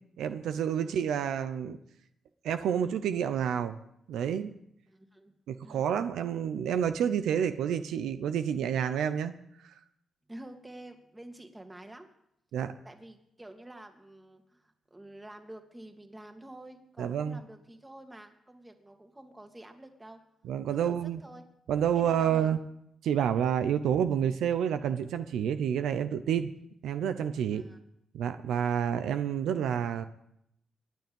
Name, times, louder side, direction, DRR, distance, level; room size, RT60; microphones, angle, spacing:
voice 1, 0.2-1.8 2.4-3.8 4.1-4.5 5.5-9.3 9.6-9.7 12.5-12.7 17.0-17.4 20.4-21.2 21.7-22.6 23.0-26.5 26.8-27.6 28.1-30.1, right 8 dB, 85° right, 10 dB, 0.7 m, -29 dB
voice 2, 4.9-5.3 5.6-5.9 10.3-12.1 12.8-20.2 20.8-21.4 21.9-22.5 27.5-27.8, right 1 dB, 15° right, 5 dB, 2.2 m, -48 dB
23.0 x 9.5 x 5.4 m, 0.75 s
cardioid pair, 75°, 0 cm